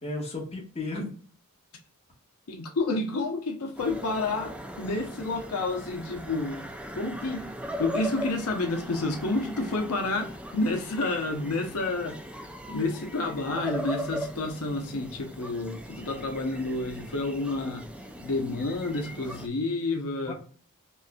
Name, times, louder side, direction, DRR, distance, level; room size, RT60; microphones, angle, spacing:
voice 1, 0.0-1.1 2.9-3.0 20.2-20.3, left 2 dB, 30° left, 1.4 m, -34 dB
voice 2, 2.5-6.6 6.9-7.5 7.8-17.9 18.2-20.3, left 2 dB, 90° left, 0.7 m, -30 dB
sound 1, 3.8-19.5, equal, 5° right, 0.3 m, -39 dB
5.3 x 2.5 x 2.2 m
head